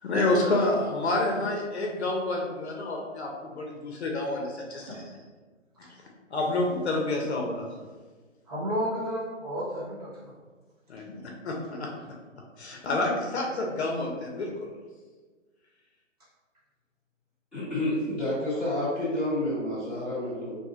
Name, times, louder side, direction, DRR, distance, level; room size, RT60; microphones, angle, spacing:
voice 1, 0.0-5.0 6.3-7.7 10.9-11.9 12.6-14.7, left 2 dB, 55° left, 0 dB, 0.7 m, -28 dB
voice 2, 8.5-10.3, equal, 30° right, -8 dB, 0.8 m, -32 dB
voice 3, 17.5-20.6, left 1 dB, ahead, -17 dB, 1.2 m, -29 dB
2.7 x 2.3 x 3.8 m, 1.4 s
hypercardioid pair, 160°, 38 cm